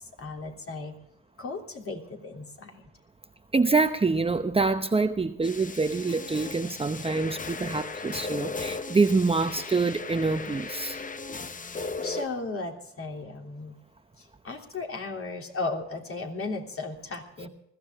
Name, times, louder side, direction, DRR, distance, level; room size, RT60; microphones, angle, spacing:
voice 1, 0.2-1.0 1.4-2.8 11.7-13.8 14.2-17.5, left 3 dB, 45° left, 2 dB, 3.2 m, -36 dB
voice 2, 3.5-11.0, right 3 dB, 20° right, 8 dB, 0.8 m, -26 dB
sound 1, 5.4-12.3, left 3 dB, 25° left, 0.9 m, -37 dB
21.0 x 14.5 x 3.6 m, 0.73 s
cardioid pair, 90°, 30 cm